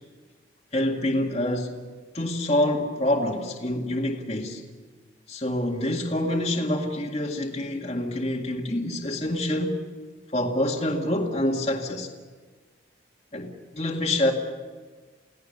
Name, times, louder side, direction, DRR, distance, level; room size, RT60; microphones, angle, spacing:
voice 1, 0.7-1.8 2.1-4.6 5.3-9.8 10.3-12.1 13.3-14.3, left 1 dB, 35° left, -2 dB, 2.1 m, -26 dB
29.0 x 17.0 x 6.7 m, 1.4 s
head